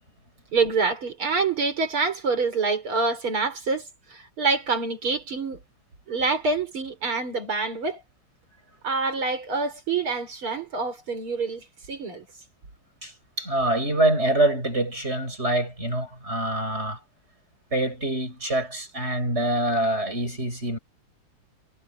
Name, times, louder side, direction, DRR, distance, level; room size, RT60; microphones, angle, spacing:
voice 1, 0.5-5.6 6.1-8.0 8.8-12.3, right 4 dB, 85° right, 5.9 m, -26 dB
voice 2, 13.0-17.0 17.7-20.8, right 1 dB, 30° right, 8.3 m, -25 dB
omnidirectional pair, 2.3 m